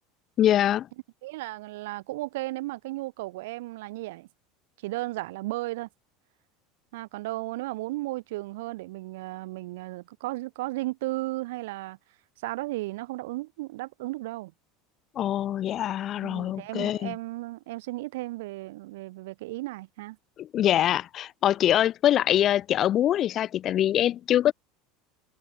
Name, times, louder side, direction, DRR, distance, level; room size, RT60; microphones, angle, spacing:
voice 1, 0.4-0.9 15.2-17.2 20.4-24.5, left 11 dB, 40° left, 0.3 m, -24 dB
voice 2, 1.2-4.3 4.8-5.9 6.9-12.0 12.4-14.5 16.2-20.2, right 19 dB, 80° right, 1.4 m, -34 dB
supercardioid pair, 130°, 0 cm